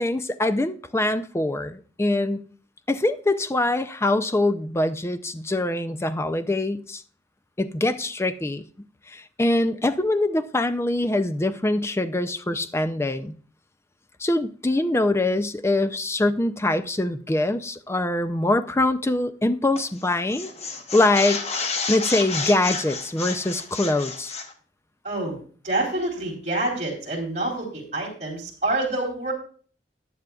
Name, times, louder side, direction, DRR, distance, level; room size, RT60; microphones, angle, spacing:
voice 1, 0.0-2.4 2.9-7.0 7.6-8.6 9.1-13.3 14.2-20.5 20.9-21.4 21.9-24.3, left 2 dB, 15° left, 0.4 m, -23 dB
sound 1, 19.8-20.0 20.3-24.5, left 4 dB, 35° left, 1.0 m, -30 dB
voice 2, 25.0-25.4 25.6-29.3, right 2 dB, 40° right, 3.6 m, -27 dB
14.5 x 9.5 x 2.4 m
head